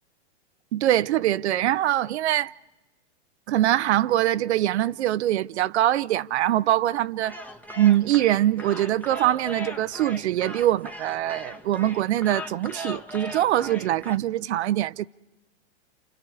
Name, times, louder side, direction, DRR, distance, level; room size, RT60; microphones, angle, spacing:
voice 1, 0.7-2.5 3.5-7.4 7.8-15.1, right 13 dB, 70° right, 0.7 m, -23 dB
sound 1, 7.2-14.2, equal, 5° left, 1.0 m, -39 dB
29.0 x 29.0 x 4.8 m
hypercardioid pair, 135°, 34 cm